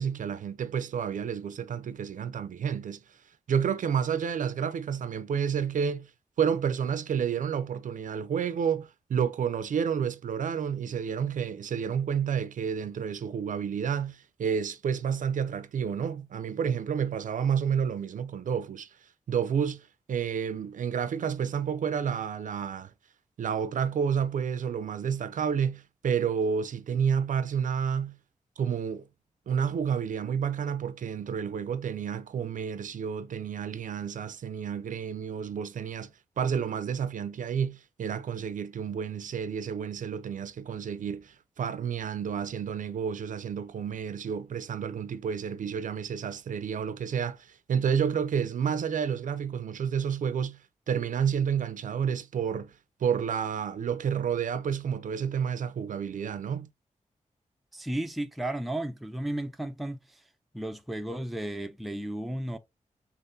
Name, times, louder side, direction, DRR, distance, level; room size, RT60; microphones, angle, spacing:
voice 1, 0.0-3.2 3.5-6.1 6.4-18.9 19.3-22.9 23.4-28.2 28.6-29.1 29.5-36.1 36.4-50.6 50.9-52.7 53.0-56.7, right 7 dB, 80° right, 0.4 m, -30 dB
voice 2, 57.7-60.2 60.5-62.6, right 1 dB, ahead, 0.4 m, -34 dB
6.5 x 2.5 x 2.6 m
wide cardioid pair, 140°, 13 cm